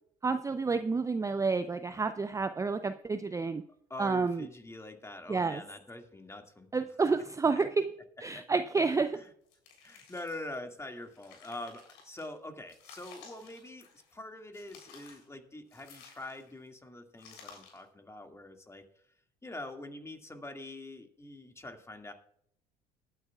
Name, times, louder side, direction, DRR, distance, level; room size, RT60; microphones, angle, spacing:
voice 1, 0.2-3.6 4.0-4.5 5.3-5.6 6.7-7.9 8.2-9.2, right 4 dB, 15° right, 11 dB, 0.5 m, -29 dB
voice 2, 3.9-6.7 7.6-7.7 8.3-8.4 9.1-9.3 9.8-13.9 14.1-18.8 19.4-22.1, left 2 dB, 15° left, 4 dB, 2.0 m, -44 dB
sound 1, 9.5-10.5 11.0-12.2 12.7-14.2 14.5-15.3 15.7-16.6 17.2-17.9, left 6 dB, 70° left, 3.5 m, -55 dB
20.0 x 9.1 x 2.3 m, 0.68 s
hypercardioid pair, 65°, 19 cm